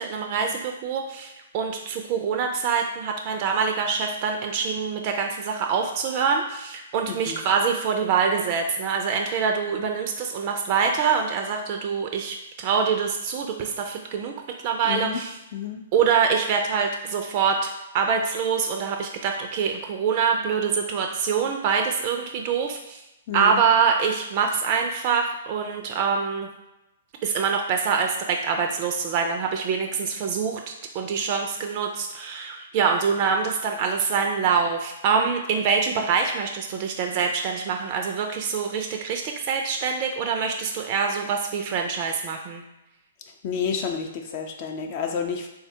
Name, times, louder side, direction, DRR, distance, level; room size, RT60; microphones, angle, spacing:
voice 1, 0.0-14.4 14.6-15.4 15.9-23.0 23.3-26.5 27.2-30.6 30.9-42.6, right 6 dB, 40° right, 3 dB, 0.3 m, -25 dB
voice 2, 14.8-15.2 15.5-15.8 23.3-23.6 43.4-45.5, left 6 dB, 45° left, 3 dB, 0.4 m, -30 dB
3.4 x 2.1 x 2.7 m, 0.96 s
hypercardioid pair, 125°, 0 cm